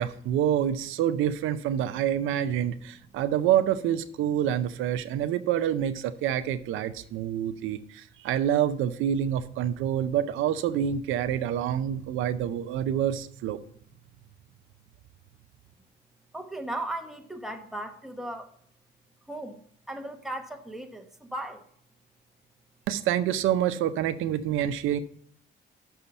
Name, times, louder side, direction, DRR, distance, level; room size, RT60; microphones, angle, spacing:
voice 1, 0.0-13.6 22.9-25.0, right 10 dB, 85° right, 0.5 m, -27 dB
voice 2, 16.3-18.5 19.3-19.6 19.9-21.6, right 1 dB, ahead, 1.1 m, -36 dB
6.2 x 5.7 x 6.7 m
cardioid pair, 90°, 20 cm